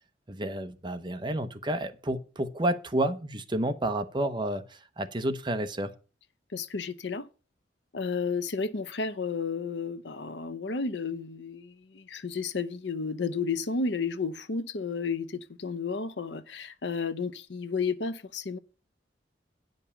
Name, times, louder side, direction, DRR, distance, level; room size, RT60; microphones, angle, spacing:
voice 1, 0.3-5.9, right 1 dB, 25° right, 0.8 m, -30 dB
voice 2, 6.5-7.3 7.9-18.6, left 4 dB, 85° left, 0.8 m, -32 dB
9.8 x 5.3 x 7.0 m
head